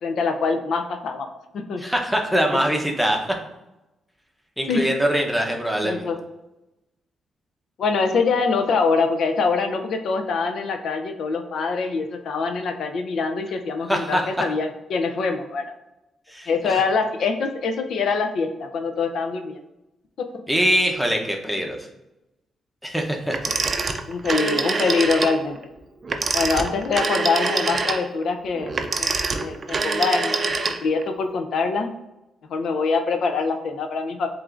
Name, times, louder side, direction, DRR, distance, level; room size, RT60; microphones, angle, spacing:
voice 1, 0.0-1.3 1.5-1.8 2.5-2.6 4.7-4.9 5.8-6.2 7.8-15.6 16.5-19.6 24.1-25.6 26.3-29.1 29.4-30.5 30.8-31.9 32.5-34.3, left 4 dB, 70° left, 6 dB, 0.4 m, -24 dB
voice 2, 1.8-3.2 4.6-6.1 13.9-14.2 16.3-16.8 20.5-21.8 22.8-23.5, equal, ahead, 1 dB, 0.7 m, -23 dB
Telephone, 23.3-25.4 26.0-31.1, right 4 dB, 40° right, 0.4 m, -25 dB
7.4 x 2.5 x 2.5 m, 0.96 s
cardioid pair, 95°, 0 cm